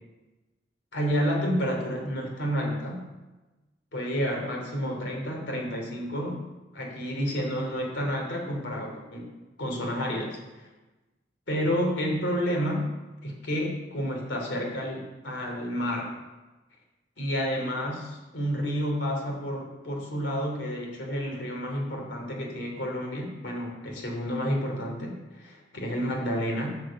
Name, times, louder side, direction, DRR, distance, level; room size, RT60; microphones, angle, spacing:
voice 1, 0.9-3.1 3.9-6.5 6.7-9.3 9.6-10.7 11.5-12.9 13.2-16.1 17.2-26.8, equal, 85° left, 0 dB, 3.0 m, -30 dB
13.5 x 4.9 x 7.5 m, 1.1 s
head